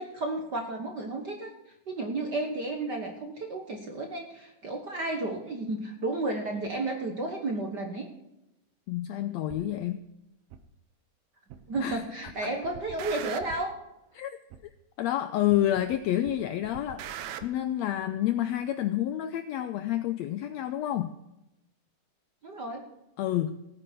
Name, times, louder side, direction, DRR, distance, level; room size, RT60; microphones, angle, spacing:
voice 1, 0.0-1.5 1.9-8.1 11.7-13.7 22.4-22.9, right 2 dB, 50° right, 3 dB, 1.3 m, -32 dB
voice 2, 8.9-10.1 11.8-12.5 14.1-14.3 15.0-17.0 17.4-21.1 23.2-23.6, left 12 dB, 85° left, 11 dB, 1.5 m, -29 dB
sound 1, 9.5-9.6 10.5-10.6 11.5-12.0 12.3-13.7 14.5-14.6 15.5-16.0 16.3-17.5, right 10 dB, 70° right, 2.0 m, -41 dB
18.0 x 9.2 x 4.6 m, 0.90 s
omnidirectional pair, 3.7 m